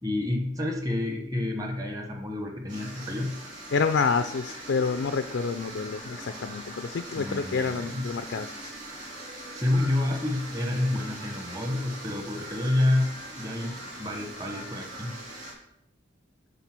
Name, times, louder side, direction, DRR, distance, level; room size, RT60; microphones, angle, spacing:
voice 1, 0.0-3.4 7.1-8.0 9.5-13.1 13.4-15.1, left 1 dB, 20° right, 3 dB, 1.0 m, -29 dB
sound 1, 2.7-15.5, right 1 dB, 40° right, 2.9 m, -41 dB
voice 2, 3.7-8.7, left 5 dB, 75° left, 9 dB, 0.4 m, -28 dB
9.1 x 3.7 x 6.0 m, 0.79 s
head